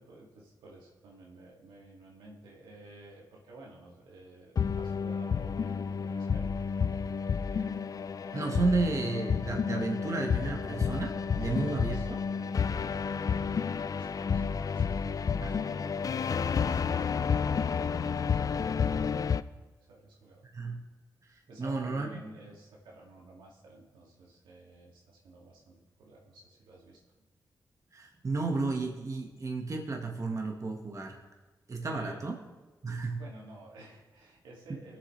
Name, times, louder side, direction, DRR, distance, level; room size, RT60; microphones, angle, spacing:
voice 1, 0.0-6.6 11.4-14.4 14.7-19.2 19.8-20.5 21.5-27.0 31.8-32.2 33.2-35.0, right 2 dB, 90° right, -3 dB, 2.1 m, -53 dB
sound 1, 4.6-19.4, left 6 dB, 50° left, 0.4 m, -30 dB
voice 2, 8.3-12.0 15.4-15.5 20.5-20.8 21.6-22.1 27.9-31.2 31.7-32.4 32.8-33.2, right 3 dB, 40° right, 1 dB, 1.4 m, -32 dB
18.5 x 7.4 x 3.2 m, 1.2 s
cardioid pair, 50°, 8 cm